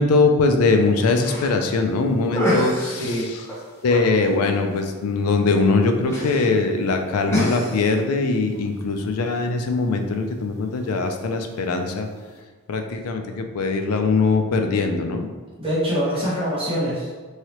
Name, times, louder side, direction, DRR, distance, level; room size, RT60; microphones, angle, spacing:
voice 1, 0.0-3.3 3.8-12.1 12.7-15.3, left 3 dB, 90° left, 5 dB, 0.4 m, -21 dB
sound 1, 0.8-12.4, equal, 10° left, 0.6 m, -32 dB
voice 2, 2.7-3.3 15.6-17.1, equal, 25° right, -9 dB, 0.9 m, -24 dB
3.1 x 2.7 x 2.9 m, 1.4 s
head